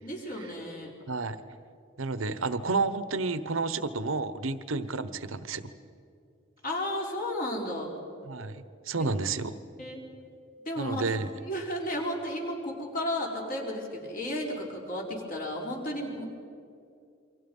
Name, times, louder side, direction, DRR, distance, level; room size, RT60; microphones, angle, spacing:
voice 1, 0.0-0.9 6.6-7.9 9.0-9.1 9.8-10.0 10.6-11.1 11.4-16.3, left 1 dB, 45° left, -1 dB, 4.5 m, -33 dB
voice 2, 1.1-1.4 2.0-5.7 8.3-9.6 10.8-11.3, right 3 dB, 85° right, 13 dB, 1.1 m, -31 dB
28.5 x 24.0 x 5.5 m, 2.5 s
head